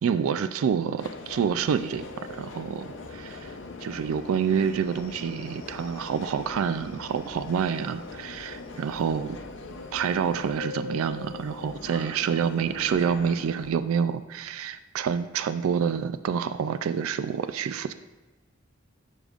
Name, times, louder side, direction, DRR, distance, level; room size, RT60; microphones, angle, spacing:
voice 1, 0.0-3.5 3.8-9.4 9.9-17.9, right 7 dB, 90° right, 12 dB, 0.3 m, -28 dB
Subway metro underground, 1.0-13.7, left 3 dB, 65° left, 0.7 m, -41 dB
10.0 x 6.4 x 2.4 m, 1.2 s
head